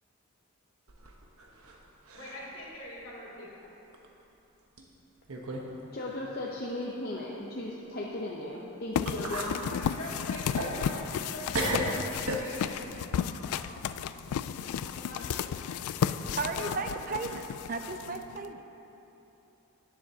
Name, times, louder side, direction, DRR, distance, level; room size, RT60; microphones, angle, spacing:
sound 1, 0.9-1.8 2.1-2.5 3.0-3.1 3.9-4.1 4.8-4.9 5.3-5.7 6.0-6.1 8.6-8.7 9.1-9.6 10.0-11.3 11.5-12.8, right 1 dB, 80° right, 1.1 m, -34 dB
voice 1, 2.1-3.7 9.7-12.8 13.1-13.9 14.9-15.7 16.1-16.7, left 1 dB, 65° left, -6 dB, 2.4 m, -44 dB
voice 2, 5.9-9.6, left 1 dB, 45° left, -4 dB, 0.7 m, -36 dB
sound 2, 8.9-18.5, left 8 dB, 85° left, 0.3 m, -33 dB
voice 3, 16.4-18.6, right 3 dB, 40° right, 6 dB, 0.5 m, -35 dB
17.5 x 7.4 x 2.8 m, 3.0 s
head